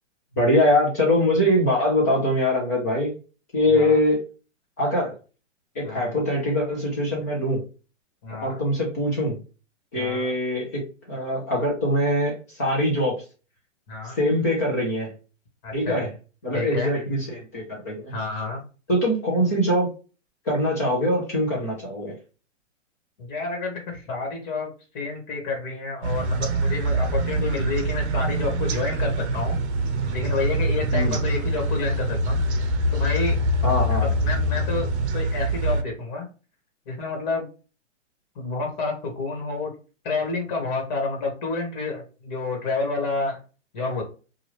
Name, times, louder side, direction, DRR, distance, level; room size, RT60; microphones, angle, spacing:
voice 1, 0.4-3.1 3.5-4.2 4.8-5.1 5.7-7.6 8.4-9.4 9.9-13.2 14.0-15.1 15.7-16.1 16.4-18.1 18.9-19.9 20.4-22.1 30.9-31.1 33.6-34.1, left 1 dB, 15° left, -3 dB, 0.4 m, -23 dB
voice 2, 5.8-6.1 8.2-8.6 9.9-10.4 13.9-14.2 15.6-16.0 16.5-16.9 18.1-18.6 23.2-29.6 30.1-33.3 33.9-36.3 36.8-37.5 38.3-39.7 40.0-43.4 43.7-44.0, left 3 dB, 35° left, 2 dB, 1.3 m, -29 dB
sound 1, 26.0-35.8, right 1 dB, 60° right, 0.7 m, -24 dB
2.9 x 2.3 x 3.1 m, 0.34 s
hypercardioid pair, 150°, 37 cm